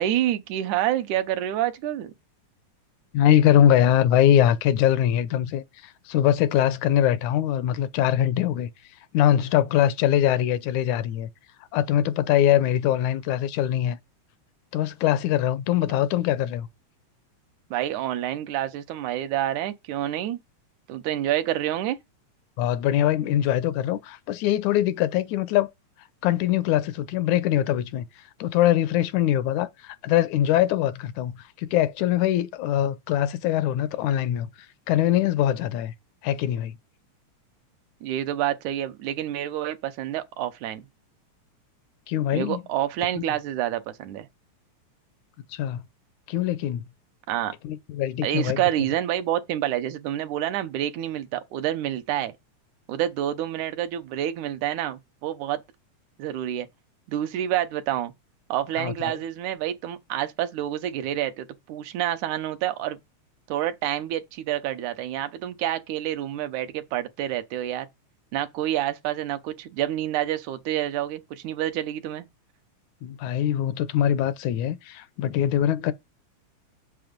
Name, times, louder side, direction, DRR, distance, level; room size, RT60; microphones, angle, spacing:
voice 1, 0.0-2.1 17.7-20.4 20.9-22.0 38.0-40.9 42.3-44.3 47.3-47.5 48.2-52.3 52.9-55.6 56.2-56.7 57.1-58.1 58.5-63.0 63.5-67.9 68.3-72.3, right 12 dB, 85° right, 2.4 m, -28 dB
voice 2, 3.1-8.7 9.1-11.3 11.7-14.0 14.7-16.7 22.6-25.7 26.2-28.1 28.4-34.5 34.9-35.9 36.2-36.8 42.1-42.6 43.2-43.3 45.5-45.9 46.3-46.9 47.6-48.6 58.8-59.1 73.0-75.9, left 11 dB, 80° left, 2.2 m, -22 dB
7.8 x 6.1 x 5.2 m
omnidirectional pair, 3.4 m